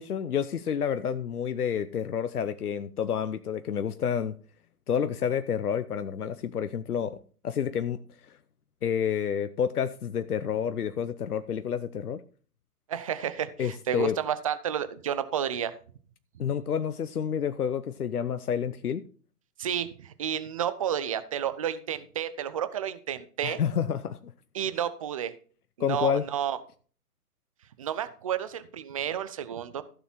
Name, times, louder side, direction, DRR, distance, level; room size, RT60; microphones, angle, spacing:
voice 1, 0.0-4.3 4.9-8.0 8.8-12.2 13.6-14.2 16.4-19.0 23.4-24.3 25.8-26.2, left 8 dB, 70° left, 0.9 m, -29 dB
voice 2, 12.9-15.7 19.6-23.6 24.5-25.4 25.8-26.6 27.8-29.8, right 9 dB, 25° right, 0.6 m, -31 dB
15.0 x 7.0 x 4.4 m
figure-of-eight pair, 135°, 46 cm